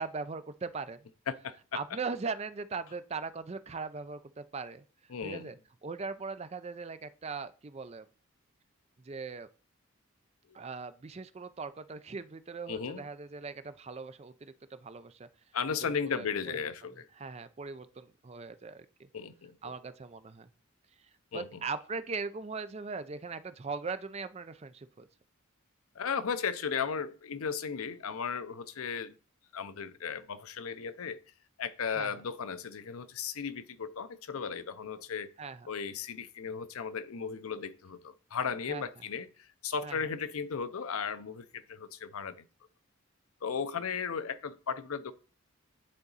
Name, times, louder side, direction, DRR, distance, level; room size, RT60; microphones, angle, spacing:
voice 1, 0.0-1.1 1.7-4.8 5.2-5.6 5.8-8.0 9.0-9.5 10.5-15.3 15.8-16.6 17.2-19.1 19.6-20.5 21.3-25.1 32.0-32.1 35.4-35.7 38.7-38.8 39.8-40.0, right 4 dB, 30° right, 0.4 m, -40 dB
voice 2, 1.3-1.8 5.1-5.5 12.7-13.1 15.5-17.1 19.1-19.6 21.3-21.7 26.0-29.1 29.5-31.2 31.6-35.3 35.7-42.5 43.4-45.1, left 6 dB, 80° left, 0.6 m, -36 dB
9.7 x 3.9 x 4.0 m
head